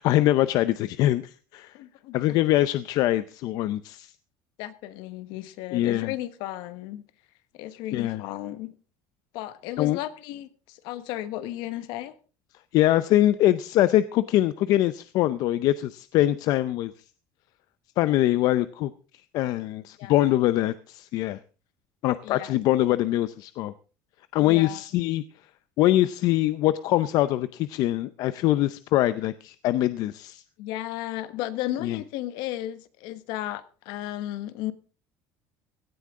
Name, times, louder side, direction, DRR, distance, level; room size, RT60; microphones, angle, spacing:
voice 1, 0.0-1.7 2.1-4.1 5.7-6.1 7.9-8.2 9.8-10.0 12.7-16.9 18.0-18.9 19.3-21.4 22.0-23.7 24.3-25.2 25.8-30.4 31.8-32.0, left 14 dB, 55° left, 14 dB, 0.6 m, -23 dB
voice 2, 1.7-2.2 4.6-7.0 7.5-8.7 9.3-12.2 20.0-20.3 22.2-22.6 24.4-24.8 30.6-34.7, left 14 dB, 70° left, 14 dB, 1.2 m, -34 dB
17.0 x 13.0 x 3.6 m, 0.35 s
cardioid pair, 160°, 8 cm